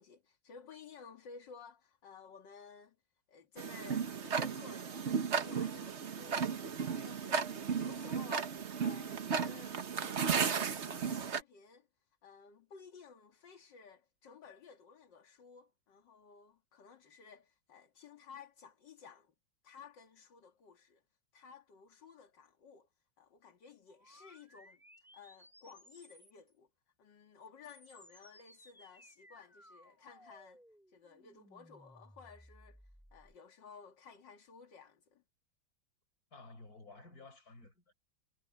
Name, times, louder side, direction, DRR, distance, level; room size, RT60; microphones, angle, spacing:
voice 1, 0.0-3.0 3.3-19.3 19.6-21.0 21.3-22.9 23.2-26.7 27.0-30.6 30.9-32.8 33.1-35.2, left 5 dB, 70° left, 2.5 m, -56 dB
Tick-tock, 3.6-11.4, right 6 dB, 40° right, 1.2 m, -35 dB
sound 1, 23.9-26.5 27.4-33.4, equal, ahead, 3.0 m, -61 dB
voice 2, 36.3-37.9, left 3 dB, 50° left, 5.4 m, -54 dB
omnidirectional pair, 2.1 m